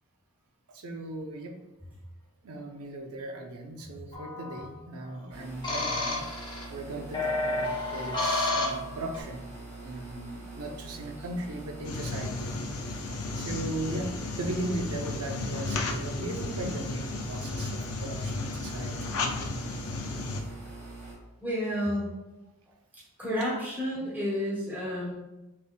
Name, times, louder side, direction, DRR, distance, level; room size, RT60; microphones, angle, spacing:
voice 1, 0.7-1.5 2.4-6.2 6.7-9.4 9.8-12.5 13.4-14.1 14.4-19.2, right 2 dB, 85° right, 4 dB, 0.6 m, -37 dB
sound 1, 4.1-4.6 5.6-6.6 7.1-9.2, left 2 dB, 20° left, 0.8 m, -30 dB
sound 2, 5.3-21.2, right 2 dB, 40° right, 1.4 m, -44 dB
sound 3, 11.8-20.4, left 3 dB, 85° left, 0.5 m, -34 dB
voice 2, 21.4-22.1 23.2-25.1, equal, 10° right, -8 dB, 1.2 m, -30 dB
5.8 x 3.2 x 2.2 m, 1.0 s
head